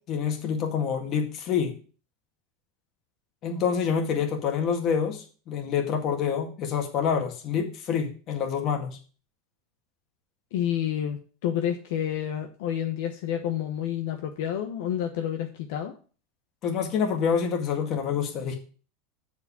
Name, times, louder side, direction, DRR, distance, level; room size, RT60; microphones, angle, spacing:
voice 1, 0.1-1.8 3.4-9.0 16.6-18.6, left 7 dB, 35° left, 3 dB, 1.9 m, -27 dB
voice 2, 10.5-16.0, left 10 dB, 70° left, 4 dB, 1.0 m, -29 dB
6.9 x 4.9 x 6.9 m, 0.38 s
supercardioid pair, 150°, 0 cm